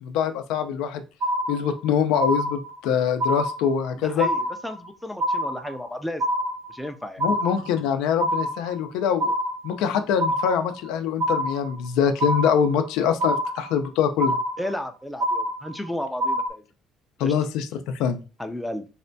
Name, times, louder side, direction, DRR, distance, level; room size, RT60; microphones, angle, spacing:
voice 1, 0.0-1.0 1.5-4.3 7.2-9.3 9.6-14.4 17.2-18.2, left 8 dB, 85° left, 8 dB, 0.4 m, -24 dB
sound 1, 1.2-1.9 2.2-2.9 3.2-3.9 4.2-4.9 5.2-5.9 6.2-6.9 7.2-7.9 8.2-8.9 9.2-9.9 10.2-10.9 11.2-11.9 12.2-12.9 13.2-13.9 14.2-14.9 15.2-15.9 16.2-16.5, equal, 40° right, 0.7 m, -26 dB
voice 2, 4.0-6.2 6.7-7.2 14.6-16.6 17.2-17.3 18.4-18.9, left 1 dB, 5° left, 5 dB, 0.4 m, -33 dB
4.2 x 2.2 x 2.6 m, 0.32 s
cardioid pair, 130°, 0 cm